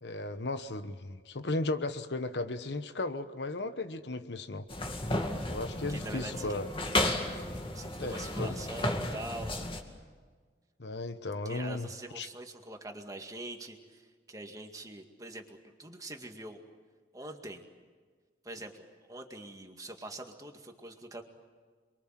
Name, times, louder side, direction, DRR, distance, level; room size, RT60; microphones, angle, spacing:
voice 1, 0.0-4.7 5.5-6.7 8.0-8.6 10.8-11.9 12.2-12.3, left 2 dB, 70° left, 10 dB, 1.1 m, -35 dB
sound 1, 4.7-9.8, left 1 dB, 30° left, 2.3 m, -33 dB
voice 2, 5.9-6.6 7.7-9.5 11.4-16.6 17.1-17.6 18.4-21.2, right 1 dB, 20° right, 4 dB, 2.1 m, -44 dB
28.0 x 23.0 x 7.6 m, 1.5 s
head